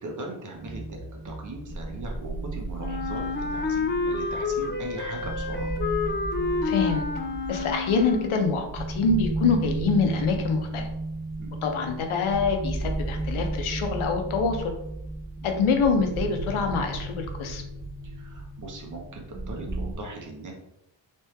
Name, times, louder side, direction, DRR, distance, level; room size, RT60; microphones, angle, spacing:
voice 1, 0.0-1.0 1.2-5.7 11.4-11.5 15.4-15.5 18.2-20.5, right 2 dB, 40° right, 1 dB, 1.0 m, -39 dB
sound 1, 0.5-19.9, right 2 dB, 15° right, 0.7 m, -34 dB
Wind instrument woodwind instrument, 2.8-8.6, left 4 dB, 25° left, 0.3 m, -29 dB
voice 2, 6.6-7.0 7.5-10.9 11.6-14.7 15.4-17.6, left 4 dB, 85° left, 4 dB, 0.9 m, -25 dB
3.4 x 3.2 x 4.4 m, 0.79 s
wide cardioid pair, 160°, 48 cm